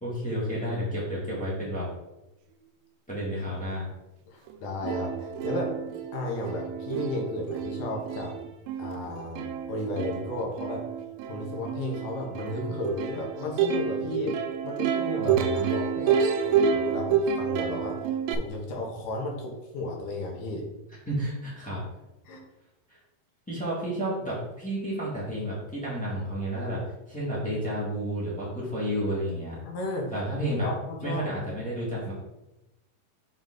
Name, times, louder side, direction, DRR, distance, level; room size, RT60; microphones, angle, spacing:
voice 1, 0.0-1.9 3.1-3.9 15.2-15.7 21.0-21.8 22.9-23.0 23.5-26.8 27.1-29.6 30.1-30.7 31.0-32.1, equal, 10° left, -8 dB, 0.4 m, -31 dB
voice 2, 4.3-5.8 6.1-8.3 8.8-10.8 11.2-14.4 14.6-20.7 22.3-22.4 29.6-30.1 30.6-31.3, left 1 dB, 65° left, -1 dB, 2.3 m, -34 dB
Plucked string instrument, 4.5-4.6 4.8-18.4, right 7 dB, 80° right, 2.3 m, -29 dB
7.1 x 4.0 x 3.9 m, 0.96 s
omnidirectional pair, 4.5 m